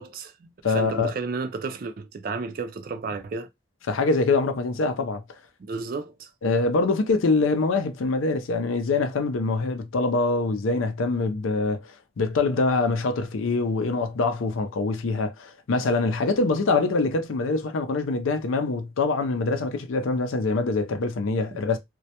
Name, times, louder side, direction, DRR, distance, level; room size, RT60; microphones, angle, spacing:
voice 1, 0.0-3.5 5.6-6.3 21.5-21.6, right 4 dB, 45° right, 0.3 m, -33 dB
voice 2, 0.6-1.1 3.9-5.2 6.4-11.8 12.2-21.8, left 3 dB, 80° left, 0.4 m, -24 dB
2.2 x 2.1 x 2.7 m
head